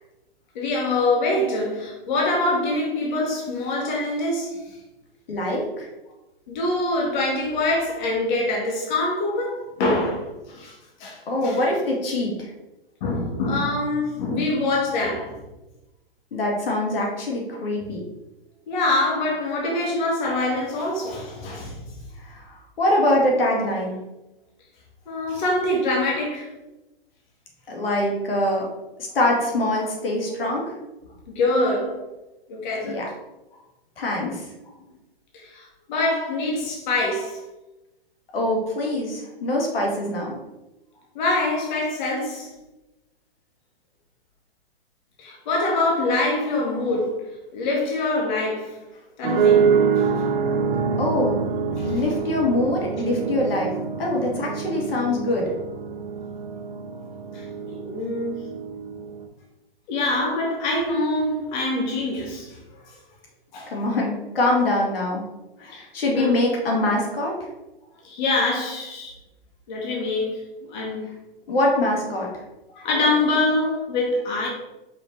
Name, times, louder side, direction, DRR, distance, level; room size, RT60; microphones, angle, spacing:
voice 1, 0.6-4.8 6.5-11.6 13.0-15.4 18.7-21.8 25.1-26.5 31.3-32.1 32.5-33.0 35.3-37.4 41.2-42.5 45.2-48.8 49.2-50.2 51.8-52.0 57.3-58.6 59.9-62.6 62.8-63.0 63.5-63.7 65.7-65.9 66.1-66.4 68.0-69.1 69.7-70.4 70.7-71.1 72.7-74.5, left 2 dB, 50° left, 1.8 m, -25 dB
voice 2, 5.3-5.9 11.3-12.5 16.3-18.0 22.3-24.0 27.7-28.7 29.0-30.7 32.8-33.0 34.0-34.4 38.3-40.4 51.0-51.4 51.8-53.7 54.0-55.5 63.7-65.2 65.6-67.3 71.5-72.3, left 1 dB, 75° left, 2.1 m, -23 dB
sound 1, 49.2-59.3, right 6 dB, 60° right, 1.1 m, -25 dB
5.5 x 4.4 x 4.4 m
hypercardioid pair, 130°, 29 cm